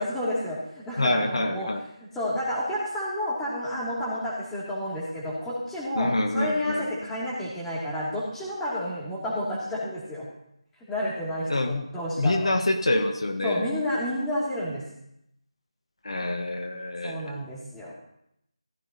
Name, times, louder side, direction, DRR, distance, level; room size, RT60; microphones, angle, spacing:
voice 1, 0.0-1.7 2.1-10.3 10.9-12.5 13.4-14.8 17.0-17.9, left 1 dB, 5° left, -6 dB, 2.5 m, -30 dB
voice 2, 1.0-1.8 5.9-6.9 11.5-11.8 12.2-13.7 16.0-17.4, left 2 dB, 65° left, 6 dB, 1.2 m, -26 dB
14.5 x 13.5 x 2.8 m, 0.77 s
figure-of-eight pair, 160°, 3 cm